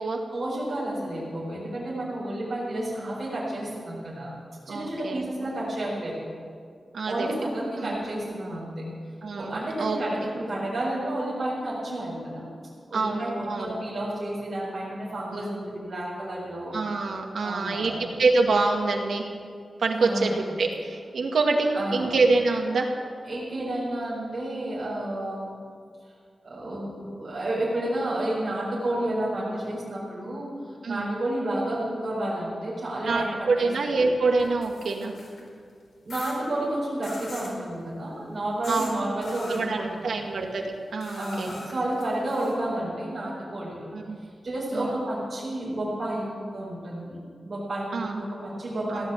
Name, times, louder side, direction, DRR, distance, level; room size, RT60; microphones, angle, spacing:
voice 1, 0.3-4.3 4.7-6.2 7.0-8.8 9.3-12.5 12.9-16.7 17.4-18.1 19.9-20.4 21.7-22.1 23.3-25.5 26.4-33.7 36.0-40.1 41.1-43.9 44.4-47.2 47.4-49.1, right 1 dB, 35° right, -8 dB, 4.7 m, -31 dB
voice 2, 4.7-5.2 6.9-7.3 7.8-8.0 9.2-10.3 12.9-13.7 15.3-15.6 16.7-19.2 19.8-20.3 20.6-22.9 30.8-31.1 33.1-35.1 38.7-39.0 39.5-40.6 40.9-41.5 43.9-44.2 44.7-45.0 47.9-48.2 48.9-49.0, right 3 dB, 80° right, 2 dB, 2.0 m, -26 dB
sound 1, 34.4-35.5 36.1-36.4 37.0-37.6 38.6-38.9 39.2-39.6 41.0-42.5, left 2 dB, 70° left, 4.1 m, -42 dB
16.5 x 11.5 x 7.3 m, 2.2 s
wide cardioid pair, 175°, 0 cm